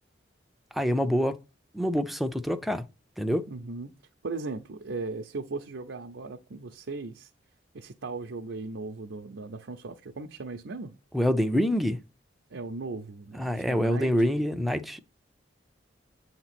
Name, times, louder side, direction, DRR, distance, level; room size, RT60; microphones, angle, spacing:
voice 1, 0.7-1.4 1.7-2.8 3.2-3.5 11.1-12.0 13.3-15.0, equal, ahead, 0.5 m, -26 dB
voice 2, 3.5-3.9 4.2-7.3 7.7-11.0 12.5-14.1, right 3 dB, 85° right, 0.6 m, -37 dB
7.9 x 2.9 x 5.9 m
head